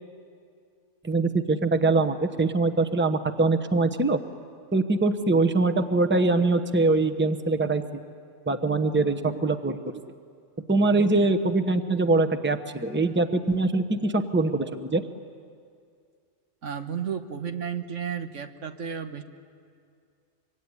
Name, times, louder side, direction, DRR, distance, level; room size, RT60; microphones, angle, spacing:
voice 1, 1.0-4.2 4.7-7.8 8.5-9.8 10.7-15.0, right 3 dB, 10° right, 9 dB, 0.9 m, -23 dB
voice 2, 16.6-19.2, right 7 dB, 80° right, 7 dB, 1.6 m, -33 dB
25.5 x 24.0 x 9.8 m, 2.3 s
omnidirectional pair, 1.3 m